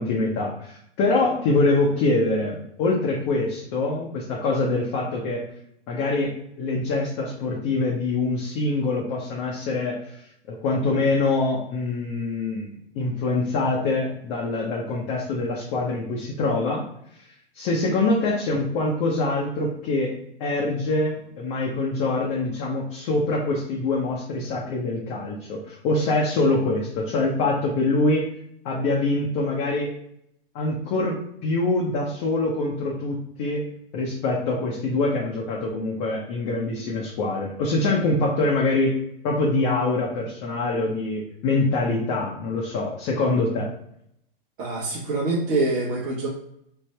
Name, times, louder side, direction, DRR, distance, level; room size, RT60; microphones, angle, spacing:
voice 1, 0.0-5.4 5.9-10.2 10.5-16.8 17.5-20.1 20.4-28.2 28.6-29.9 30.5-33.7 33.9-39.0 39.2-43.7, left 2 dB, 40° left, -2 dB, 0.7 m, -24 dB
voice 2, 44.6-46.3, right 2 dB, 35° right, -7 dB, 0.9 m, -25 dB
3.3 x 2.0 x 3.2 m, 0.74 s
hypercardioid pair, 125°, 29 cm